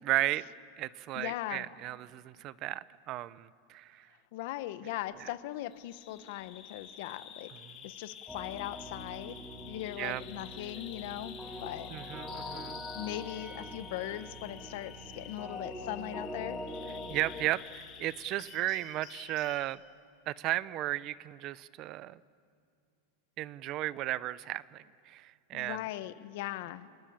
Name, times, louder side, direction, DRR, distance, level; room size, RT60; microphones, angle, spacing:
voice 1, 0.0-0.4 0.8-4.1 5.2-5.3 7.7-7.8 10.0-10.2 11.9-12.8 17.1-19.8 20.3-22.2 23.4-25.8, right 15 dB, 40° right, 18 dB, 0.7 m, -35 dB
voice 2, 1.1-1.7 4.3-7.5 7.8-9.3 9.6-11.9 12.9-16.6 25.5-26.9, left 15 dB, 60° left, 13 dB, 1.2 m, -39 dB
Bird vocalization bird call bird song, 5.7-19.7, left 8 dB, 40° left, 5.9 m, -49 dB
sound 1, 8.3-17.5, left 1 dB, ahead, 2.5 m, -44 dB
26.5 x 22.5 x 8.8 m, 2.3 s
supercardioid pair, 140°, 0 cm